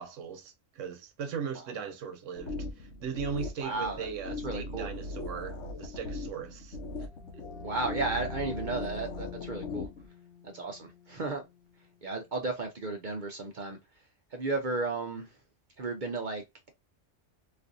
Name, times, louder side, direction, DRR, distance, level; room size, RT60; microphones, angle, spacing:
voice 1, 0.0-7.1 7.3-7.4, right 6 dB, 85° right, 1.1 m, -39 dB
sound 1, 2.4-10.1, left 2 dB, 80° left, 1.0 m, -39 dB
voice 2, 3.6-4.9 7.6-9.9 10.4-11.4 12.0-13.8 14.3-15.4 15.8-16.7, right 3 dB, 50° right, 0.6 m, -34 dB
sound 2, 6.8-12.3, left 5 dB, 45° left, 1.1 m, -46 dB
4.2 x 2.5 x 2.5 m
omnidirectional pair, 1.2 m